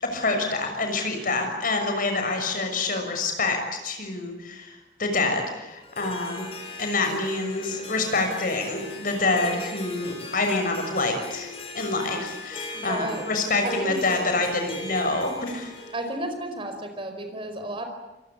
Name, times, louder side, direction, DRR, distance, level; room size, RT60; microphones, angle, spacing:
voice 1, 0.0-6.5 6.8-15.7, left 3 dB, 50° left, 5 dB, 6.4 m, -27 dB
Harp, 5.7-16.2, left 2 dB, 35° left, 6.3 m, -39 dB
voice 2, 12.7-13.3 13.6-14.0 15.9-17.8, right 1 dB, 30° right, 6 dB, 4.9 m, -33 dB
27.5 x 23.0 x 8.7 m, 1.0 s
head